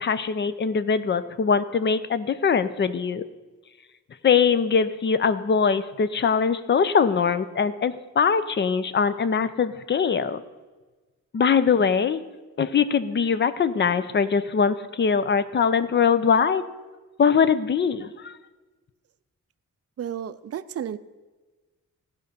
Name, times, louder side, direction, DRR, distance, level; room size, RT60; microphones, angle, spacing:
voice 1, 0.0-3.2 4.2-10.4 11.3-12.2 12.6-16.6 17.2-18.3, left 6 dB, 35° left, 13 dB, 0.5 m, -22 dB
voice 2, 20.0-21.0, right 9 dB, 50° right, 14 dB, 0.5 m, -32 dB
15.5 x 5.2 x 6.8 m, 1.3 s
wide cardioid pair, 180°, 31 cm